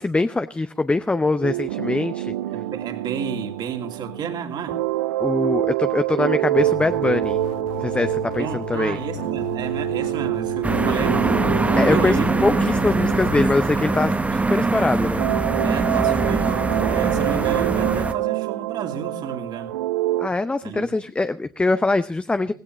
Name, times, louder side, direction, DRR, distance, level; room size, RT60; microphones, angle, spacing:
voice 1, 0.0-2.3 5.2-7.4 7.8-9.0 11.8-12.2 12.4-15.2 20.2-22.5, left 3 dB, 10° left, 0.7 m, -23 dB
sound 1, 1.4-14.7 15.2-20.3, right 15 dB, 65° right, 0.6 m, -26 dB
voice 2, 2.5-4.8 8.4-11.4 11.9-12.4 15.6-19.7 20.6-20.9, right 7 dB, 40° right, 2.6 m, -31 dB
sound 2, 6.6-13.4, left 13 dB, 55° left, 0.7 m, -35 dB
sound 3, 10.6-18.1, right 3 dB, 10° right, 1.1 m, -22 dB
18.0 x 16.0 x 3.2 m
figure-of-eight pair, 70°, 11 cm